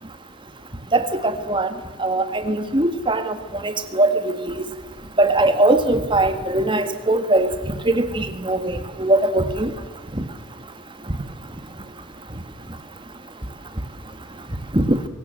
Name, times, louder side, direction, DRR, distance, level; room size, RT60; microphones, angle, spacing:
voice 1, 0.9-1.7 2.0-3.3 3.6-4.6 5.2-7.5 7.9-8.6 9.0-9.7 14.7-14.8, right 2 dB, 25° right, 9 dB, 1.9 m, -20 dB
24.5 x 16.0 x 7.7 m, 1.3 s
head